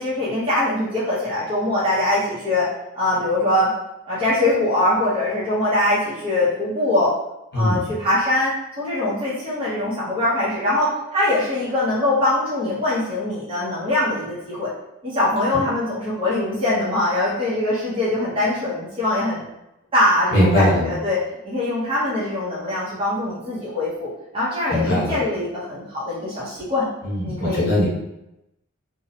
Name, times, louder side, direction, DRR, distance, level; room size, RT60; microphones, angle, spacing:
voice 1, 0.0-2.7 2.9-3.7 4.1-7.1 7.5-8.5 8.8-14.7 15.0-19.5 19.9-21.2 21.4-26.9 27.2-27.6, left 1 dB, 25° right, -10 dB, 0.7 m, -22 dB
voice 2, 20.3-20.9 24.7-25.2 27.0-27.9, equal, 55° left, -6 dB, 1.1 m, -20 dB
2.6 x 2.1 x 2.7 m, 0.88 s
head